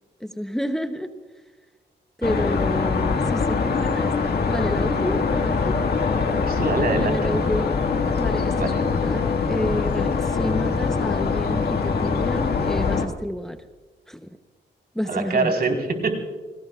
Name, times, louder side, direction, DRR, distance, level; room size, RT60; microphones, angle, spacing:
voice 1, 0.2-1.1 2.2-4.1 4.5-5.8 6.9-7.7 8.2-13.6 14.1-14.3 14.9-15.5, equal, ahead, 7 dB, 0.8 m, -29 dB
sound 1, 2.2-13.1, left 5 dB, 60° left, 1.9 m, -23 dB
voice 2, 6.4-7.3 8.5-8.8 15.1-16.2, right 4 dB, 55° right, 3 dB, 4.3 m, -24 dB
29.5 x 18.5 x 2.4 m, 1.3 s
cardioid pair, 95°, 19 cm